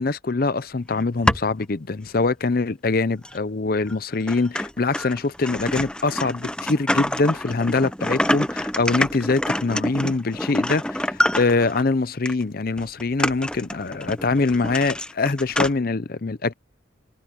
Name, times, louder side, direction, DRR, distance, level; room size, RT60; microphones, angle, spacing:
voice 1, 0.0-16.5, left 3 dB, 45° left, 0.6 m, -23 dB
sound 1, 0.9-1.6 2.2-2.3 3.2-3.4 3.9-4.0 4.3-11.8 12.3-12.4 12.8-15.7, left 1 dB, 5° left, 0.7 m, -26 dB
head